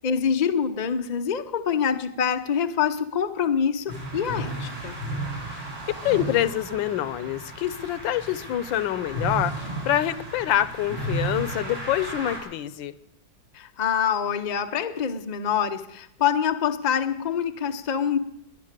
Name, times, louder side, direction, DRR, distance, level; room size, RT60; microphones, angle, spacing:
voice 1, 0.0-5.0 13.5-18.2, left 7 dB, 45° left, 7 dB, 0.5 m, -25 dB
sound 1, 3.9-12.4, right 1 dB, 80° right, 6.2 m, -33 dB
voice 2, 6.0-13.0, left 12 dB, 90° left, 16 dB, 1.5 m, -26 dB
19.5 x 10.5 x 6.6 m, 0.80 s
omnidirectional pair, 2.0 m